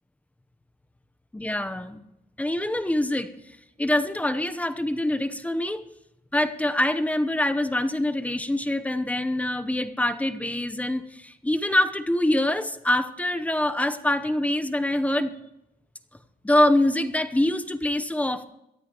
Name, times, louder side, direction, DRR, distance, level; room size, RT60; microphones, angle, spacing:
voice 1, 1.3-2.0 2.4-3.3 3.8-5.8 6.3-15.3 16.4-18.4, left 1 dB, 10° left, 9 dB, 0.8 m, -25 dB
22.0 x 13.0 x 3.0 m, 0.85 s
cardioid pair, 125°, 16 cm